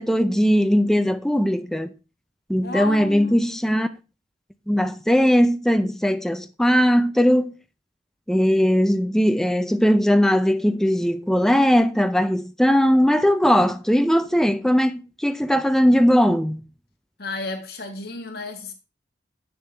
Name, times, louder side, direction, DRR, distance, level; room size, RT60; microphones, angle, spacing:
voice 1, 0.0-1.9 2.5-3.9 4.7-7.5 8.3-16.6, equal, ahead, 0.4 m, -19 dB
voice 2, 2.6-3.4 17.2-18.7, left 3 dB, 55° left, 1.7 m, -32 dB
8.2 x 6.8 x 3.3 m
head